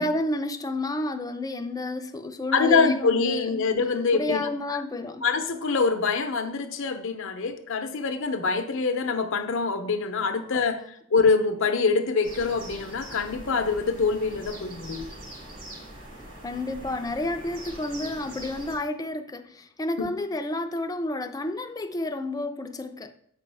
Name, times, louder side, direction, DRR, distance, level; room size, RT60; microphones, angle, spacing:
voice 1, 0.0-3.5 4.1-5.3 10.3-10.5 16.4-23.1, left 2 dB, 15° left, 0.5 m, -30 dB
voice 2, 2.5-4.5 5.2-10.8 11.1-15.1 20.0-20.1, left 4 dB, 65° left, 0.6 m, -25 dB
sound 1, 12.2-18.7, right 1 dB, 65° right, 3.1 m, -42 dB
7.6 x 5.2 x 3.4 m
head